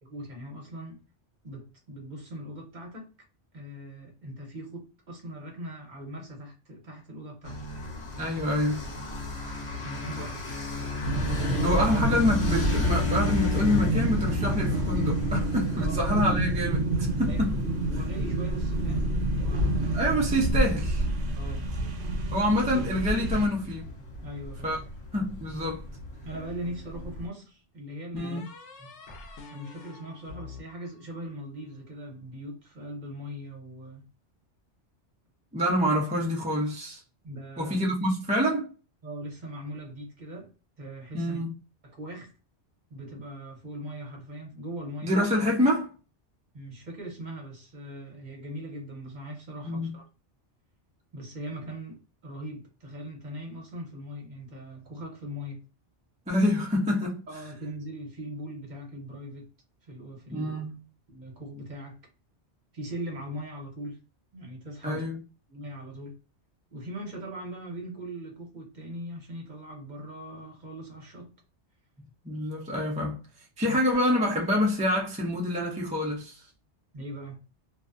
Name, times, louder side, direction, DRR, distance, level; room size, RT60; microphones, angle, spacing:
voice 1, 0.0-1.0 1.4-3.1 3.5-7.6 9.7-10.4 10.7-11.0 11.4-11.8 15.8-16.0 17.3-17.4 17.9-20.1 21.3-21.8 24.2-24.8 26.2-28.4 28.8-28.9 29.5-34.1 37.2-37.8 39.0-40.5 40.8-41.4 41.8-42.3 42.9-45.2 46.5-50.0 51.1-55.6 57.3-59.5 59.8-60.6 61.1-62.0 62.7-64.0 64.3-65.0 65.5-66.1 66.7-71.3 73.6-73.8 76.9-77.4, right 1 dB, 45° right, 0.9 m, -40 dB
sound 1, 7.4-27.3, left 3 dB, 65° left, 1.1 m, -35 dB
voice 2, 8.2-8.8 11.6-17.6 19.9-21.1 22.3-23.8 24.6-24.8 25.1-25.8 28.1-28.4 35.5-37.0 37.6-38.7 41.1-41.5 45.0-45.9 49.6-49.9 56.3-57.2 60.3-60.8 64.8-65.2 72.2-73.2 73.6-76.3, left 1 dB, 10° right, 0.3 m, -26 dB
sound 2, 11.0-23.5, right 1 dB, 75° right, 0.9 m, -28 dB
sound 3, 26.3-27.2 28.2-31.5, left 4 dB, 90° left, 0.9 m, -47 dB
2.4 x 2.2 x 2.4 m
omnidirectional pair, 1.2 m